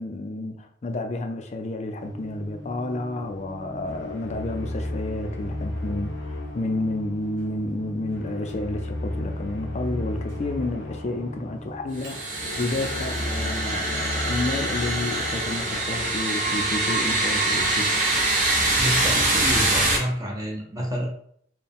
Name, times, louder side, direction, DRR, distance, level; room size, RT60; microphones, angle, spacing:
voice 1, 0.0-18.1, left 2 dB, 35° left, 0.4 m, -30 dB
Microwave oven, 2.0-15.4, left 1 dB, 85° right, 1.3 m, -43 dB
sound 1, 3.8-16.9, left 1 dB, 85° left, 0.7 m, -35 dB
sound 2, 12.0-20.0, right 2 dB, 40° right, 0.9 m, -24 dB
voice 2, 18.8-21.1, equal, 20° right, 0.6 m, -29 dB
4.4 x 2.2 x 3.4 m
head